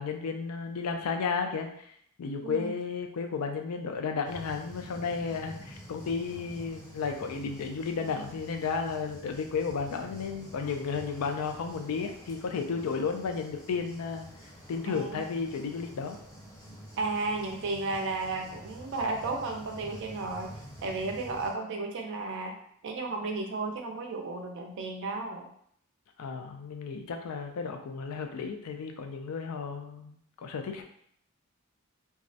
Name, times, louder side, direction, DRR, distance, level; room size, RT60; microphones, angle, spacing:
voice 1, 0.0-1.9 2.2-16.2 26.2-30.8, left 5 dB, 90° left, 5 dB, 0.4 m, -33 dB
sound 1, 4.2-21.5, equal, 15° left, 0.6 m, -48 dB
voice 2, 14.8-15.2 17.0-20.5 20.8-22.6 22.8-25.5, right 3 dB, 55° right, 3 dB, 0.4 m, -33 dB
2.3 x 2.0 x 2.6 m, 0.67 s
head